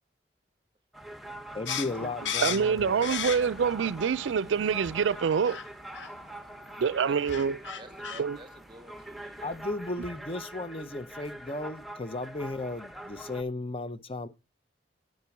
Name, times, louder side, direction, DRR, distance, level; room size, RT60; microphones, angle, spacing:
sound 1, 0.9-13.4, right 1 dB, ahead, 0.9 m, -44 dB
voice 1, 1.5-3.2 9.4-14.3, left 2 dB, 30° left, 0.7 m, -35 dB
sound 2, 1.7-3.7 4.1-4.8 5.5-5.7 5.9-6.1 6.9-7.0 7.2-8.2, left 8 dB, 80° left, 0.9 m, -34 dB
voice 2, 2.4-5.6 6.8-7.6 8.2-8.4, right 6 dB, 85° right, 0.4 m, -26 dB
sound 3, 2.8-3.1 4.8-5.1 7.3-7.6 8.2-8.3 10.0-10.5, right 2 dB, 60° left, 1.6 m, -49 dB
voice 3, 7.1-7.4 7.7-9.6, right 1 dB, 25° right, 0.9 m, -51 dB
10.5 x 4.5 x 7.0 m
head